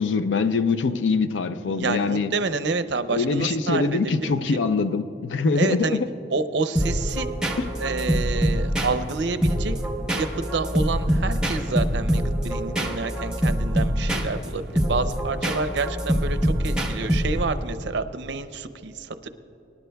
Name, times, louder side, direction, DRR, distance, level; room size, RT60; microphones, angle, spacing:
voice 1, 0.0-2.3 3.1-6.1 7.6-7.7, left 4 dB, 85° left, 11 dB, 0.5 m, -23 dB
voice 2, 1.8-4.0 4.3-4.6 5.6-6.0 6.3-7.3 7.8-9.8 10.1-19.3, right 3 dB, 70° right, 10 dB, 0.6 m, -28 dB
sound 1, 6.8-17.6, equal, 5° right, 0.9 m, -25 dB
25.0 x 11.0 x 2.3 m, 3.0 s
head